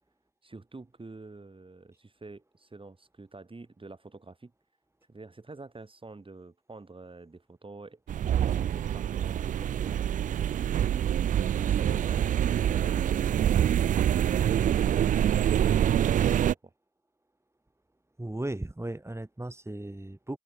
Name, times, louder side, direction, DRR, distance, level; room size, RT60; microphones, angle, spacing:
voice 1, 0.4-4.5 5.1-10.1 10.4-11.0 11.6-13.8, right 3 dB, 40° right, 6.8 m, -47 dB
sound 1, 8.1-16.5, right 10 dB, 90° right, 0.4 m, -25 dB
voice 2, 18.2-20.4, right 1 dB, 20° right, 4.5 m, -36 dB
open air
cardioid pair, 40°, 13 cm